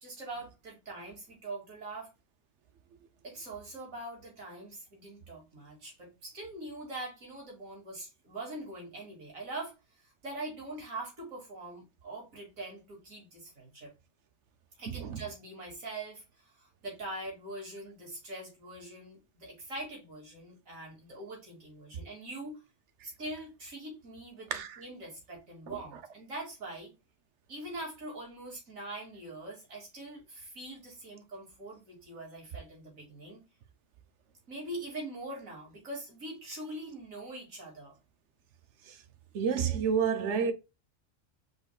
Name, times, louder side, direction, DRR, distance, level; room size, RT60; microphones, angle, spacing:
voice 1, 0.0-2.1 3.2-13.9 14.8-22.5 23.0-26.9 27.5-33.4 34.5-38.0, right 2 dB, 90° right, 2.7 m, -43 dB
voice 2, 39.3-40.5, right 6 dB, 65° right, 1.0 m, -29 dB
5.3 x 4.2 x 2.3 m
omnidirectional pair, 1.4 m